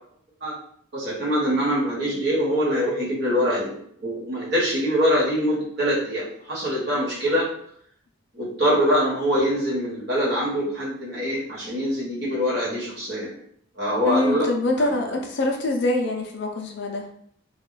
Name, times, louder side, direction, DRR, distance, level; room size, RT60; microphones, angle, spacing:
voice 1, 0.9-3.7 4.0-7.5 8.3-13.3 13.8-14.5 14.8-14.9, equal, 55° right, -6 dB, 1.2 m, -24 dB
voice 2, 14.0-17.1, left 2 dB, 55° left, 3 dB, 0.4 m, -24 dB
2.3 x 2.2 x 3.8 m, 0.65 s
head